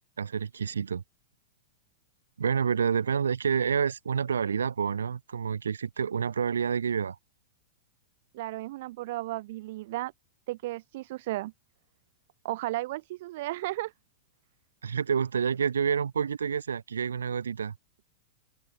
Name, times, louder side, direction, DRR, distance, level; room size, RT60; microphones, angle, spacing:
voice 1, 0.2-1.0 2.4-7.2 14.8-17.7, right 7 dB, 75° right, 6.2 m, -28 dB
voice 2, 8.3-10.1 10.5-11.5 12.4-13.9, right 18 dB, 55° right, 5.9 m, -34 dB
open air
figure-of-eight pair, 95°, 0 cm